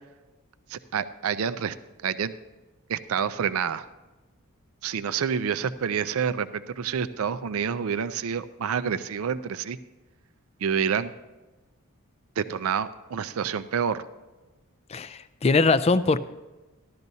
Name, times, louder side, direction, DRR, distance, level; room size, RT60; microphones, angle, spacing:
voice 1, 0.7-1.8 2.0-2.3 2.9-3.9 4.8-9.8 10.6-11.1 12.4-14.0, right 7 dB, 75° right, 13 dB, 0.4 m, -28 dB
voice 2, 14.9-16.2, left 3 dB, 30° left, 14 dB, 0.3 m, -22 dB
15.0 x 12.0 x 2.7 m, 1.1 s
head